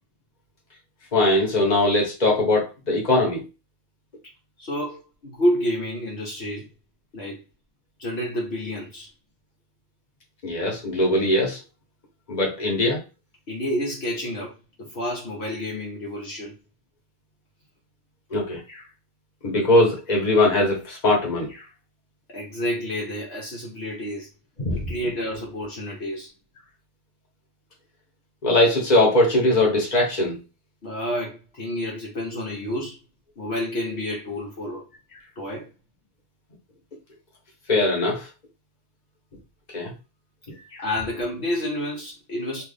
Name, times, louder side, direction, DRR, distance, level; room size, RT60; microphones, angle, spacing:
voice 1, 1.1-3.4 10.4-11.6 12.3-13.0 18.3-18.8 19.4-21.6 24.6-24.8 28.4-30.4 37.7-38.3 39.7-39.9 40.5-40.8, left 1 dB, 40° left, 1.3 m, -21 dB
voice 2, 4.6-6.7 7.1-7.4 8.0-9.1 13.5-16.5 22.3-24.3 24.7-26.3 30.8-33.0 33.4-34.9 35.4-35.7 40.8-42.6, equal, 60° left, 1.2 m, -29 dB
3.3 x 2.5 x 3.3 m
omnidirectional pair, 1.2 m